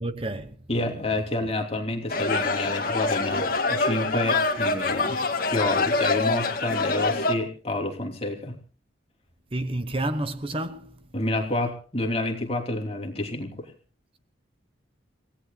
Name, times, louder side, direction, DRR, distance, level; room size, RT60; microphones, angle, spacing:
voice 1, 0.0-0.6 9.5-11.0, right 1 dB, 30° right, 1.0 m, -30 dB
voice 2, 0.7-5.2 5.5-8.6 11.1-13.7, left 2 dB, 30° left, 3.1 m, -29 dB
sound 1, 2.1-7.3, left 3 dB, 45° left, 2.1 m, -25 dB
29.5 x 18.0 x 2.3 m
head